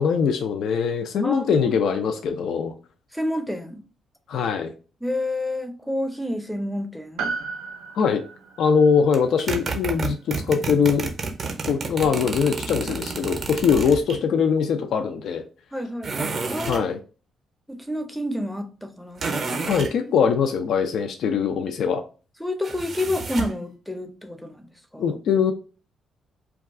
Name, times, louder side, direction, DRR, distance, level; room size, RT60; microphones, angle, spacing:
voice 1, 0.0-2.7 4.3-4.7 7.9-8.2 8.6-11.1 11.7-15.4 16.7-17.0 19.7-22.0 25.0-25.5, left 6 dB, 70° left, 0.3 m, -22 dB
voice 2, 1.2-1.7 3.1-3.8 5.0-7.3 15.7-16.9 17.7-19.7 20.0-20.1 22.4-25.2, left 1 dB, ahead, 0.5 m, -29 dB
Piano, 7.2-11.8 12.0-12.1, right 5 dB, 90° right, 0.4 m, -36 dB
sound 1, 9.1-14.2 16.0-16.9 19.2-19.9 22.6-23.6, right 4 dB, 40° right, 0.6 m, -30 dB
2.3 x 2.3 x 3.5 m
cardioid pair, 90°, 0 cm